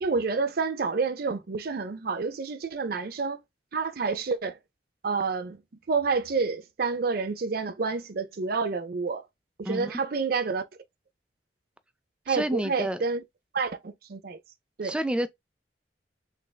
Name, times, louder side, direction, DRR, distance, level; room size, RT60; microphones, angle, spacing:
voice 1, 0.0-3.4 3.7-4.6 5.0-5.6 5.9-9.2 9.6-10.6 12.3-13.2 13.5-14.4 14.8-15.0, right 4 dB, 60° right, 0.5 m, -29 dB
voice 2, 12.3-13.0 14.8-15.3, right 1 dB, 5° right, 0.4 m, -29 dB
3.3 x 3.3 x 2.2 m
head